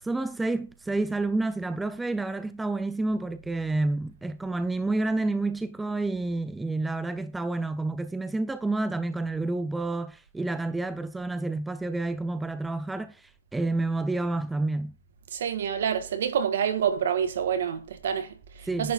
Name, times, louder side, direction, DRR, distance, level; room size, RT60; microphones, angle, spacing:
voice 1, 0.0-14.9 18.7-18.9, right 2 dB, 5° right, 0.3 m, -29 dB
voice 2, 15.3-18.9, right 8 dB, 60° right, 1.5 m, -27 dB
10.5 x 4.7 x 5.2 m
hypercardioid pair, 160°, 0 cm